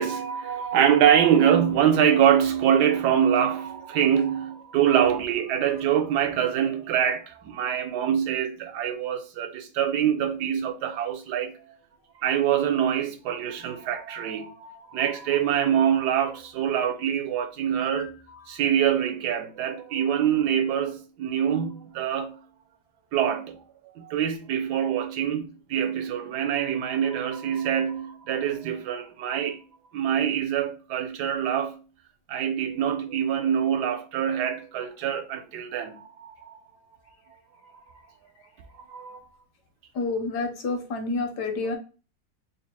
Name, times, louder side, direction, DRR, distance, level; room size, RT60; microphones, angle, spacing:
voice 1, 0.0-11.6 12.2-18.2 18.5-22.4 23.1-23.6 23.9-29.6 29.9-31.8 32.3-36.6 38.8-39.2, right 9 dB, 75° right, 1.1 m, -24 dB
voice 2, 39.9-41.8, left 3 dB, 70° left, 1.4 m, -29 dB
4.1 x 2.0 x 4.2 m
omnidirectional pair, 1.9 m